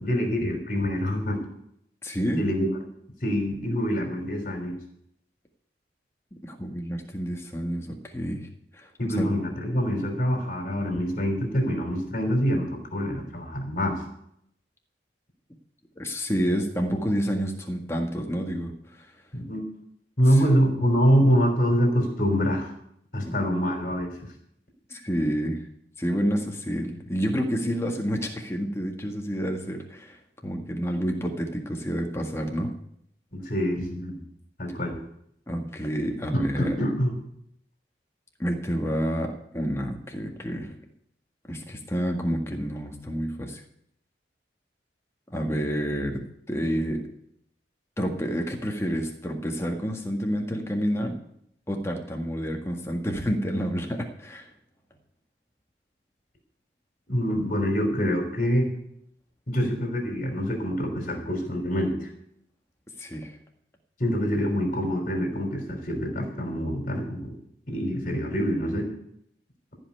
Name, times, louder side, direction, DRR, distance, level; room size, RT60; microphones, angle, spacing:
voice 1, 0.0-1.4 2.3-2.7 3.2-4.8 9.0-14.0 19.3-19.6 20.2-22.7 23.1-24.1 33.3-34.2 34.6-35.0 36.3-37.1 57.1-58.7 59.5-62.1 64.0-67.4 67.7-68.9, equal, 45° left, 3 dB, 3.5 m, -25 dB
voice 2, 2.0-2.4 6.4-8.5 8.7-8.9 9.1-9.3 16.0-19.1 20.3-20.4 24.9-25.6 26.0-30.2 30.4-32.7 35.5-36.8 38.4-40.7 41.4-43.6 45.3-46.2 46.5-47.0 48.0-51.2 51.7-54.5 63.0-63.4, equal, 15° left, 2 dB, 1.7 m, -29 dB
14.5 x 5.5 x 9.5 m, 0.72 s
head